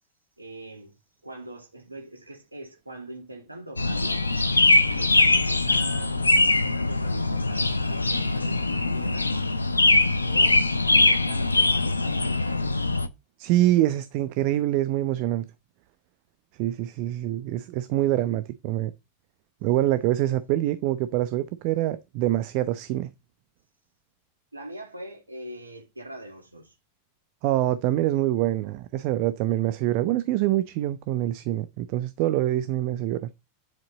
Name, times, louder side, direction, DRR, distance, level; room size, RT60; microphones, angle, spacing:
voice 1, 0.4-0.9 1.2-4.3 5.0-9.3 10.3-12.8 24.5-26.8, right 1 dB, 85° right, 2.6 m, -42 dB
sound 1, 3.8-13.1, left 2 dB, 80° left, 0.8 m, -22 dB
voice 2, 13.4-15.5 16.6-18.9 19.6-23.1 27.4-33.3, right 14 dB, 45° right, 0.8 m, -25 dB
10.5 x 7.6 x 4.1 m
figure-of-eight pair, 90°, 0 cm